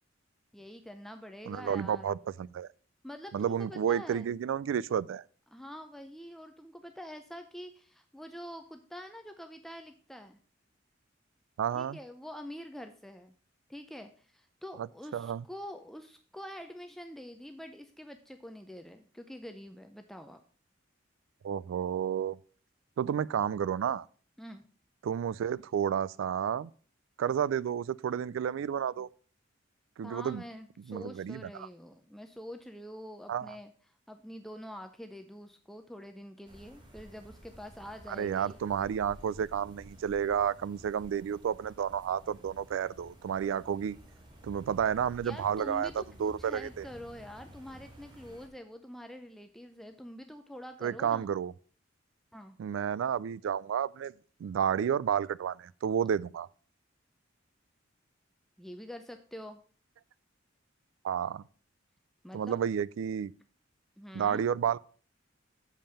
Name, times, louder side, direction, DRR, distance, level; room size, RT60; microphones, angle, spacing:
voice 1, 0.5-2.1 3.0-4.3 5.5-10.4 11.7-13.3 13.7-20.4 24.4-24.6 30.0-33.7 34.1-38.6 45.2-51.3 52.3-52.6 58.6-59.6 62.2-62.6 64.0-64.4, equal, ahead, 0.4 m, -46 dB
voice 2, 1.5-2.7 3.3-5.2 11.6-12.0 14.8-14.9 15.1-15.4 21.4-22.4 23.0-24.0 25.0-26.7 27.2-29.1 30.0-30.4 30.9-31.7 33.3-33.6 38.1-44.0 44.4-46.9 50.8-51.5 52.6-54.1 54.4-56.5 61.0-61.4 62.3-63.3 64.1-64.8, right 8 dB, 80° right, 0.3 m, -31 dB
sound 1, 36.5-48.5, equal, 25° right, 1.5 m, -53 dB
7.3 x 5.3 x 5.5 m
head